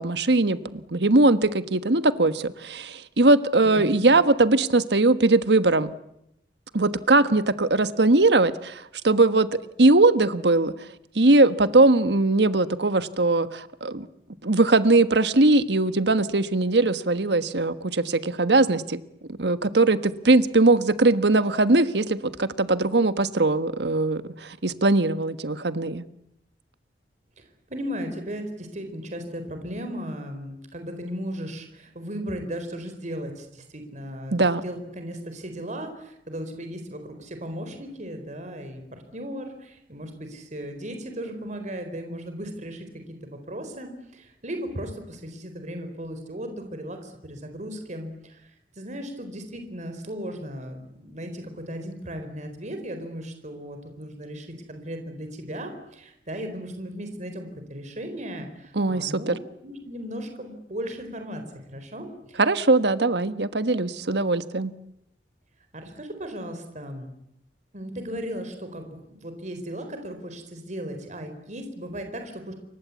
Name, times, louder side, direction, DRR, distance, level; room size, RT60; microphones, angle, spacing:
voice 1, 0.0-5.9 6.7-10.7 11.1-14.1 14.4-19.0 19.3-26.0 34.3-34.6 58.7-59.3 62.4-64.7, right 2 dB, 70° right, 12 dB, 1.4 m, -20 dB
voice 2, 27.7-34.4 34.6-42.9 43.2-48.4 48.8-59.4 59.6-62.4 65.7-67.1 67.7-72.5, equal, 45° right, 7 dB, 4.1 m, -36 dB
28.5 x 23.5 x 8.4 m, 0.81 s
head